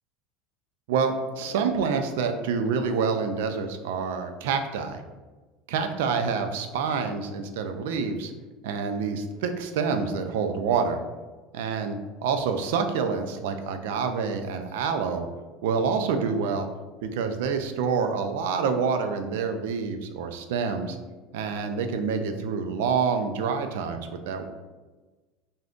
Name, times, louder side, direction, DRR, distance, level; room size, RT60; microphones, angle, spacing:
voice 1, 0.9-5.0 5.7-8.3 8.6-11.0 11.5-15.3 15.6-16.7 17.0-21.0 21.3-24.5, right 5 dB, 85° right, 7 dB, 0.3 m, -27 dB
2.6 x 2.4 x 3.4 m, 1.3 s
supercardioid pair, 135°, 0 cm